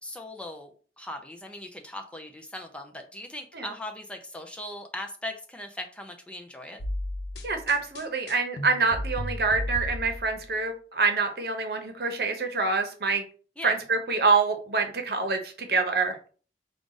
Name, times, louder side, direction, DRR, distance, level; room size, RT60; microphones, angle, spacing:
voice 1, 0.0-6.8 13.6-13.7, left 1 dB, 5° left, 4 dB, 0.5 m, -39 dB
sound 1, 6.8-10.5, left 1 dB, 75° left, 0.8 m, -34 dB
voice 2, 7.4-13.2 13.6-16.2, right 4 dB, 60° right, 6 dB, 0.8 m, -26 dB
4.9 x 2.4 x 3.9 m, 0.40 s
head